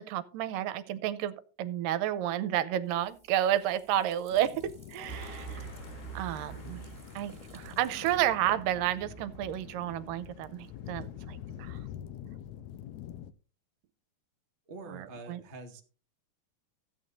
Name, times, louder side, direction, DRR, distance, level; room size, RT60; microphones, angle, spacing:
voice 1, 0.0-5.7 6.1-6.9 7.2-11.8 14.9-15.4, right 12 dB, 85° right, 13 dB, 2.3 m, -31 dB
sound 1, 2.8-8.2, right 1 dB, 10° right, 2.2 m, -57 dB
sound 2, 4.3-13.3, left 11 dB, 85° left, 1.6 m, -46 dB
sound 3, 5.1-11.9, right 5 dB, 55° left, 3.3 m, -47 dB
voice 2, 14.6-15.8, right 3 dB, 25° right, 2 dB, 1.1 m, -45 dB
15.0 x 8.9 x 2.6 m, 0.38 s
omnidirectional pair, 3.9 m